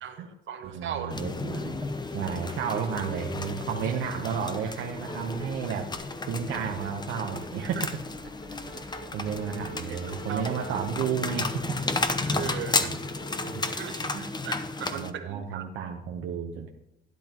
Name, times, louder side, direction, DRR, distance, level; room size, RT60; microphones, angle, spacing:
voice 1, 0.0-1.2 9.9-10.5 12.2-12.9 13.7-14.1 14.4-15.6, right 8 dB, 70° right, 7 dB, 1.2 m, -37 dB
sound 1, 0.6-12.6, right 3 dB, 25° right, 1.4 m, -50 dB
voice 2, 0.6-1.8 2.1-5.9 6.2-7.9 9.1-11.8 12.8-13.0 13.5-13.6 14.1-14.3 14.9-16.7, right 7 dB, 90° right, 2 dB, 0.9 m, -32 dB
sound 2, 1.1-15.1, left 3 dB, 20° left, 0.8 m, -33 dB
sound 3, 3.4-3.5 3.7-5.6 5.9-6.9 7.3-13.7, right 1 dB, 40° left, 1.9 m, -45 dB
12.0 x 10.0 x 3.0 m, 0.85 s
cardioid pair, 90°, 20 cm